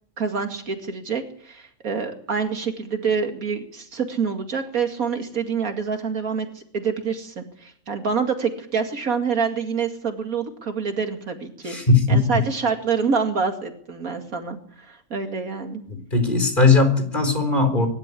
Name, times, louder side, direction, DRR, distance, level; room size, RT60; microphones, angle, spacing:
voice 1, 0.2-11.8 12.1-15.8, right 5 dB, 90° right, 5 dB, 2.7 m, -26 dB
voice 2, 11.6-12.4 15.9-17.9, left 3 dB, 35° left, 7 dB, 4.2 m, -19 dB
22.5 x 12.5 x 9.9 m, 0.63 s
omnidirectional pair, 1.4 m